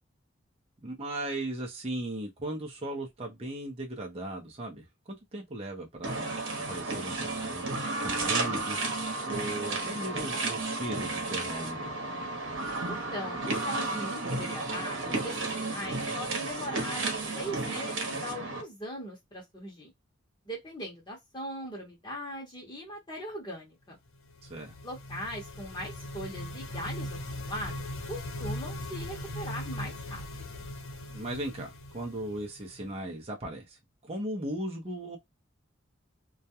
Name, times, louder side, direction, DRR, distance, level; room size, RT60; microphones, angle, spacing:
voice 1, 0.8-11.9 24.4-24.7 31.1-35.2, right 1 dB, 30° right, 0.6 m, -37 dB
sound 1, 6.0-18.6, right 2 dB, 65° right, 0.9 m, -33 dB
voice 2, 12.8-19.9 20.4-24.0 24.8-30.2 30.5-30.6, equal, 20° left, 0.9 m, -40 dB
sound 2, 24.1-32.9, left 1 dB, 75° left, 0.7 m, -39 dB
2.3 x 2.1 x 2.7 m
head